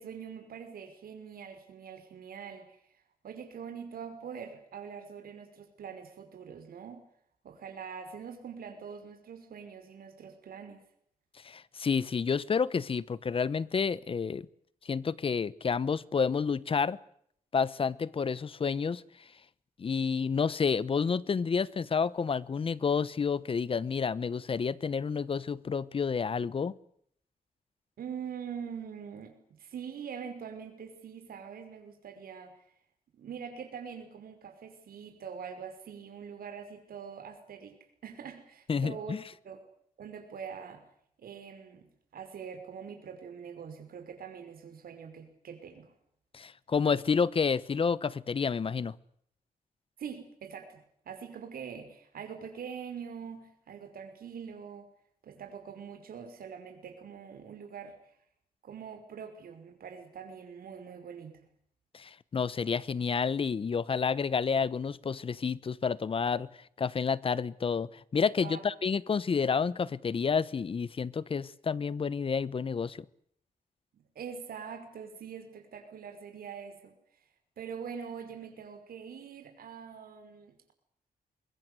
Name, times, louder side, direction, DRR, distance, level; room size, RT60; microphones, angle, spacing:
voice 1, 0.0-2.7 3.2-7.0 7.4-10.8 28.0-32.5 33.1-37.7 38.0-39.2 39.4-39.6 40.0-40.8 41.2-45.9 50.0-54.9 55.2-58.0 58.6-61.5 68.4-68.6 73.9-76.9 77.6-80.7, right 7 dB, 85° right, 5.5 m, -44 dB
voice 2, 11.4-14.5 14.8-17.0 17.5-19.0 19.8-26.7 38.7-39.2 46.3-49.0 61.9-66.5 66.8-73.0, left 5 dB, 40° left, 1.0 m, -30 dB
24.5 x 22.5 x 8.3 m
wide cardioid pair, 145°, 15 cm